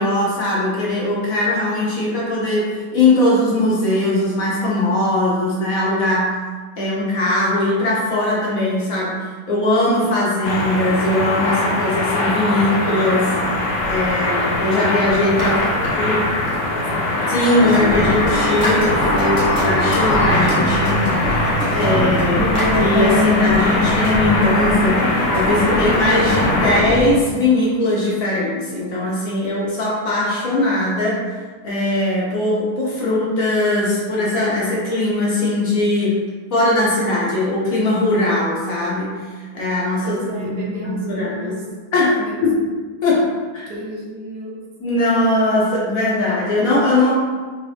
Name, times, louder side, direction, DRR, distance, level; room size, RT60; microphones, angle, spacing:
voice 1, 0.0-6.3 6.8-9.1 9.5-15.6 16.0-16.2 17.3-22.4 22.8-31.4 31.6-36.2 36.5-39.2 39.5-41.6 41.9-42.6 43.0-43.7 44.8-47.1, left 1 dB, 60° left, -6 dB, 1.2 m, -20 dB
sound 1, 10.4-26.8, left 2 dB, 85° left, 1.3 m, -21 dB
sound 2, 13.6-14.6 15.0-17.2 17.8-22.8, equal, 15° left, 0.9 m, -32 dB
voice 2, 15.4-17.1 40.0-41.7 42.2-42.4 43.7-44.6, right 1 dB, 75° right, -2 dB, 1.3 m, -33 dB
sound 3, 17.6-27.1, left 1 dB, 25° right, 0.9 m, -22 dB
3.8 x 2.5 x 3.4 m, 1.4 s
omnidirectional pair, 1.9 m